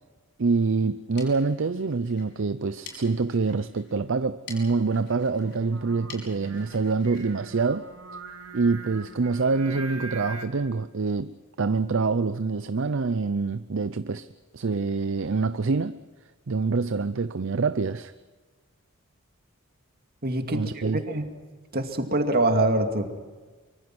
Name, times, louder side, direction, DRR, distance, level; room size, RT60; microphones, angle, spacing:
voice 1, 0.4-7.9 8.5-16.0 16.5-18.1 20.5-21.0, right 4 dB, 60° right, 0.6 m, -26 dB
sound 1, 0.9-8.4, left 4 dB, 55° left, 5.7 m, -49 dB
Singing, 5.4-10.5, right 3 dB, 85° right, 2.4 m, -42 dB
voice 2, 20.2-21.3 21.7-23.2, right 2 dB, 45° right, 2.4 m, -25 dB
24.0 x 24.0 x 6.2 m
head